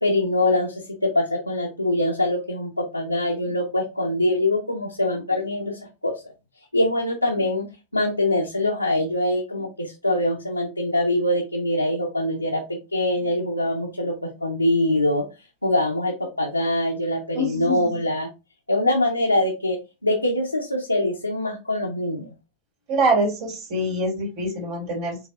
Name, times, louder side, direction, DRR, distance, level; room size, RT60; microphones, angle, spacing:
voice 1, 0.0-6.2 6.7-7.7 7.9-15.3 15.6-18.3 18.7-22.3, left 1 dB, 85° left, 0 dB, 0.7 m, -23 dB
voice 2, 17.3-18.0 22.9-25.3, right 1 dB, 50° right, -2 dB, 1.9 m, -25 dB
4.7 x 3.3 x 2.4 m, 0.27 s
figure-of-eight pair, 90°, 0 cm